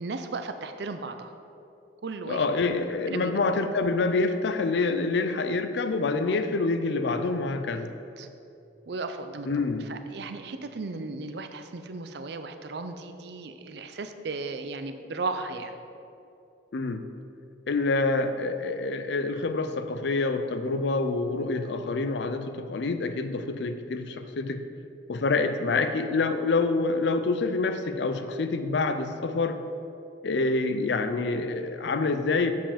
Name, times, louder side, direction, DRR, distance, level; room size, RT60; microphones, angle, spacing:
voice 1, 0.0-1.3 2.0-2.4 3.1-3.4 8.2-8.3 8.9-9.5 9.9-15.8, right 3 dB, 60° right, 8 dB, 0.5 m, -35 dB
voice 2, 2.3-7.9 9.5-9.9 16.7-17.1 17.7-24.6 25.1-29.6 30.2-32.5, left 3 dB, 65° left, 9 dB, 0.4 m, -27 dB
7.5 x 5.5 x 5.0 m, 2.7 s
head